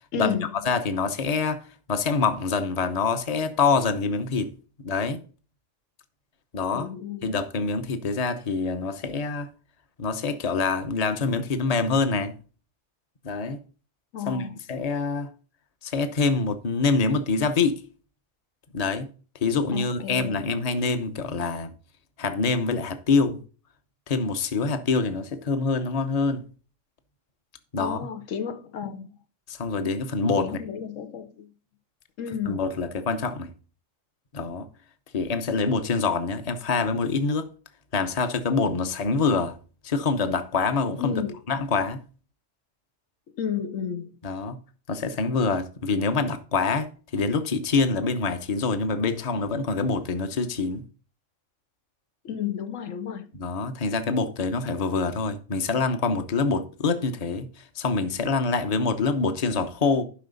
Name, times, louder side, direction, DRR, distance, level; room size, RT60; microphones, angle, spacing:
voice 1, 0.1-0.5 6.7-7.4 14.1-14.6 19.7-20.5 27.8-29.2 30.4-31.5 32.2-32.6 41.0-41.4 43.4-44.2 52.2-53.3, left 8 dB, 80° left, 1.2 m, -32 dB
voice 2, 0.6-4.5 4.8-5.2 6.5-6.9 7.2-9.5 10.0-12.3 13.2-13.6 14.3-15.3 15.8-17.8 18.7-19.1 19.4-21.7 22.2-23.4 24.1-26.4 27.7-28.0 29.5-30.6 32.5-33.5 34.3-34.7 35.1-37.5 37.9-39.6 39.8-41.2 41.5-42.0 44.2-44.6 44.9-50.8 53.3-60.0, left 4 dB, 35° left, 0.9 m, -25 dB
11.5 x 5.7 x 4.0 m
omnidirectional pair, 1.3 m